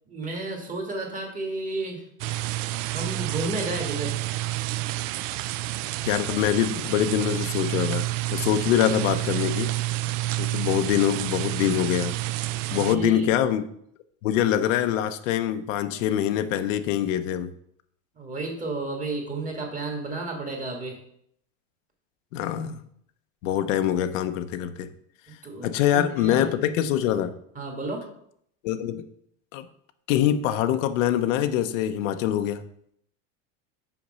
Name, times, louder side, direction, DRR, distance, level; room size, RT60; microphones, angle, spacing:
voice 1, 0.1-2.0 2.9-4.2 12.7-13.3 18.1-21.0 25.4-26.5 27.5-28.0, right 2 dB, 20° right, 1 dB, 1.7 m, -32 dB
sound 1, 2.2-12.9, right 17 dB, 80° right, 0.5 m, -29 dB
voice 2, 6.0-9.7 10.4-12.1 12.7-13.6 14.2-17.5 22.3-22.8 23.4-24.9 25.6-27.3 28.6-29.1 29.5-29.7 30.1-32.6, left 11 dB, 90° left, 10 dB, 0.7 m, -24 dB
5.8 x 5.2 x 5.3 m, 0.70 s
supercardioid pair, 140°, 37 cm